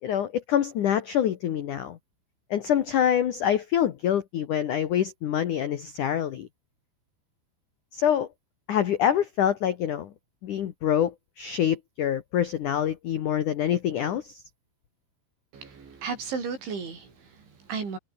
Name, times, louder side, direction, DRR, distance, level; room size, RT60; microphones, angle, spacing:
voice 1, 0.0-2.0 2.5-6.5 7.9-8.3 8.7-10.1 10.4-14.4, left 10 dB, 85° left, 1.8 m, -26 dB
voice 2, 15.5-18.0, right 5 dB, 65° right, 9.1 m, -34 dB
omnidirectional pair, 5.8 m